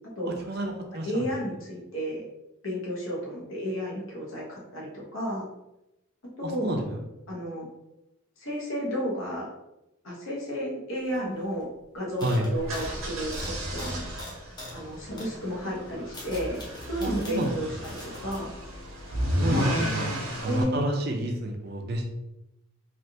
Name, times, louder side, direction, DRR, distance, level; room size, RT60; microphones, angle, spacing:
voice 1, 0.5-1.3 6.4-7.0 12.2-12.5 17.0-17.5 19.4-20.1 20.4-22.2, right 1 dB, 50° right, 2 dB, 0.5 m, -29 dB
voice 2, 1.0-2.3 2.6-5.5 6.4-6.8 7.3-7.7 8.4-9.5 10.0-11.7 11.9-14.0 14.7-18.5 19.5-19.9 20.4-20.8, equal, 70° left, -3 dB, 1.0 m, -32 dB
sound 1, 11.1-11.2 11.4-11.7 12.2-14.8 15.2-15.4 15.9-17.5 17.8-18.4, left 1 dB, 20° left, 0.6 m, -44 dB
sound 2, 12.5-20.6, equal, 80° right, 0.9 m, -33 dB
3.3 x 2.4 x 2.7 m, 0.92 s
head